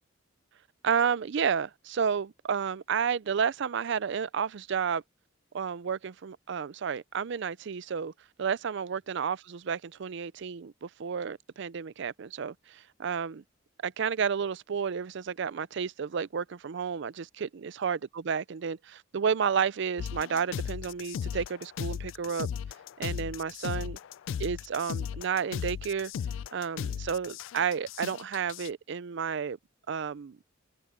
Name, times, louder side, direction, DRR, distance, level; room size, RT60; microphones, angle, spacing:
voice 1, 0.8-5.0 5.5-8.1 8.4-13.4 13.8-22.5 23.0-24.0 24.4-26.1 26.5-29.6 29.9-30.4, right 6 dB, 65° right, 0.4 m, -31 dB
sound 1, 20.0-28.7, left 7 dB, 70° left, 0.3 m, -36 dB
head